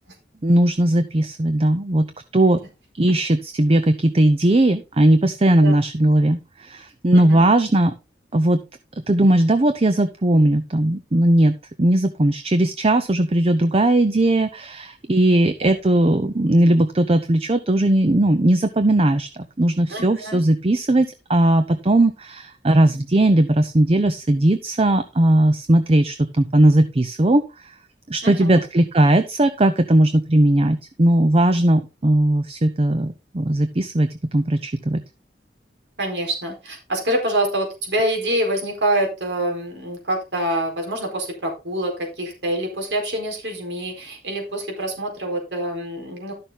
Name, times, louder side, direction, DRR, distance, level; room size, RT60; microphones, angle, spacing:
voice 1, 0.4-2.1 2.3-2.6 3.0-7.9 8.3-8.6 9.1-27.7 28.1-35.0, right 1 dB, 35° right, 9 dB, 0.7 m, -18 dB
voice 2, 7.1-7.4 15.3-15.7 19.9-20.4 28.2-28.6 36.0-46.3, right 1 dB, 85° right, 2 dB, 4.4 m, -26 dB
11.5 x 6.7 x 3.9 m, 0.27 s
head